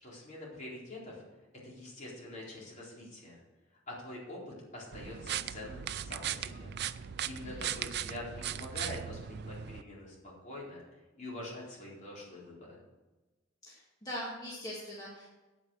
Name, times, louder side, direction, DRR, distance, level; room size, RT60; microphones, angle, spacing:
voice 1, 0.0-1.2 1.6-3.4 3.9-4.4 4.7-6.7 7.2-10.8 11.2-12.8, left 1 dB, 35° left, -5 dB, 4.2 m, -45 dB
sound 1, 4.9-9.8, right 10 dB, 55° right, 0.4 m, -38 dB
voice 2, 13.6-15.3, equal, 20° left, -6 dB, 2.1 m, -41 dB
9.2 x 9.1 x 6.4 m, 1.2 s
head